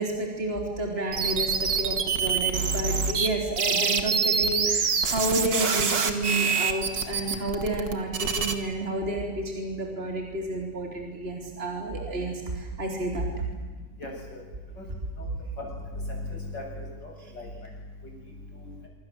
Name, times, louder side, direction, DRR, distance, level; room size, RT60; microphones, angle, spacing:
voice 1, 0.0-13.3, right 1 dB, 35° right, 1 dB, 3.9 m, -30 dB
sound 1, 1.1-3.3 3.6-8.5, right 5 dB, 85° right, 2.8 m, -25 dB
voice 2, 14.0-14.4 14.8-14.9 15.2-15.3 15.6-17.5 18.2-18.7, left 2 dB, 80° left, 0 dB, 8.5 m, -38 dB
26.0 x 26.0 x 7.9 m, 1.4 s
omnidirectional pair, 1.9 m